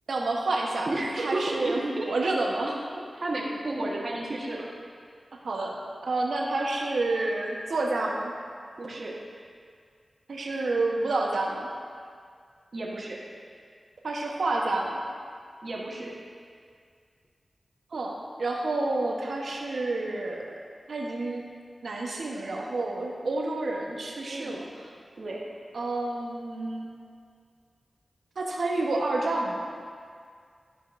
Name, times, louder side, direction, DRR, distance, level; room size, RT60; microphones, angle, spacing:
voice 1, 0.1-0.9 1.1-2.9 5.4-5.8 6.0-8.3 10.3-11.7 14.0-15.0 17.9-20.5 20.9-21.4 21.8-24.6 25.7-26.9 28.4-29.6, right 2 dB, 80° right, -1 dB, 1.0 m, -29 dB
voice 2, 0.8-2.1 3.2-4.7 8.8-9.1 12.7-13.2 15.6-16.1 24.3-24.7 25.2-25.4, right 2 dB, 65° right, -3 dB, 1.3 m, -32 dB
12.5 x 5.2 x 2.6 m, 2.2 s
cardioid pair, 45°, 0 cm